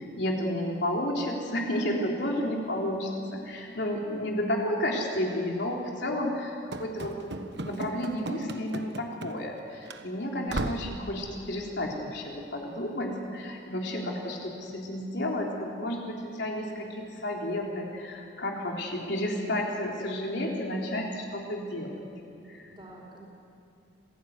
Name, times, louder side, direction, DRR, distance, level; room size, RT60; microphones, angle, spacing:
voice 1, 0.0-7.2 7.6-21.9 22.5-22.7, left 1 dB, 60° left, -1 dB, 3.7 m, -31 dB
Run / Slam, 6.7-9.6 9.9-10.0 10.5-11.0, right 2 dB, 60° right, 1.3 m, -36 dB
voice 2, 22.3-23.3, right 1 dB, 25° right, -1 dB, 5.0 m, -51 dB
26.5 x 17.5 x 9.7 m, 2.7 s
head